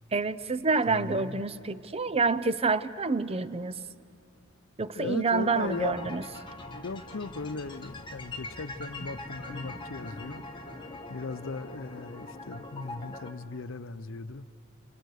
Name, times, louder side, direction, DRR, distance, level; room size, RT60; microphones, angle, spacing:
voice 1, 0.1-3.8 4.8-6.2, right 4 dB, 30° right, 0.6 m, -28 dB
voice 2, 0.9-1.5 4.9-6.2 6.7-10.4 11.1-14.5, left 3 dB, 80° left, 0.7 m, -38 dB
sound 1, 5.4-13.3, left 2 dB, 25° left, 1.6 m, -42 dB
29.0 x 28.0 x 6.5 m
head